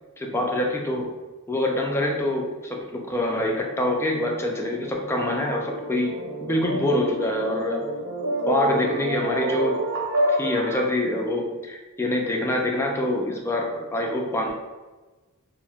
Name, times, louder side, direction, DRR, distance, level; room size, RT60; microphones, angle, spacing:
voice 1, 0.2-1.2 1.5-6.1 6.4-7.9 8.5-9.8 10.3-14.5, left 1 dB, 10° left, 0 dB, 0.3 m, -25 dB
sound 1, 3.6-10.9, right 1 dB, 60° right, 1.5 m, -29 dB
4.0 x 2.0 x 2.3 m, 1.2 s
head